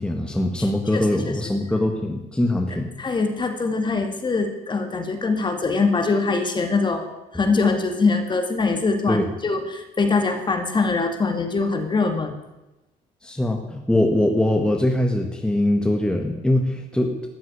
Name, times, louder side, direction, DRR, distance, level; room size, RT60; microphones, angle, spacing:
voice 1, 0.0-2.9 9.1-9.2 13.2-17.2, left 1 dB, 5° left, 2 dB, 1.6 m, -22 dB
voice 2, 3.0-7.1 7.3-12.3, left 4 dB, 25° left, 6 dB, 2.1 m, -23 dB
13.5 x 7.6 x 9.6 m, 1.0 s
cardioid pair, 110°, 17 cm